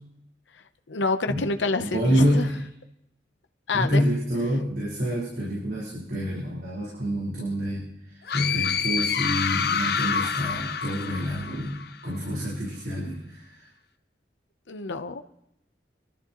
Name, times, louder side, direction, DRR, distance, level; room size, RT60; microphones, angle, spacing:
voice 1, 0.9-2.5 3.7-4.0 14.7-15.2, left 3 dB, 90° left, 8 dB, 0.8 m, -27 dB
voice 2, 1.8-2.6 3.7-13.7, equal, 60° right, -7 dB, 4.8 m, -27 dB
sound 1, 8.3-11.9, left 6 dB, 60° left, 0.7 m, -27 dB
25.0 x 13.5 x 3.1 m, 0.79 s
head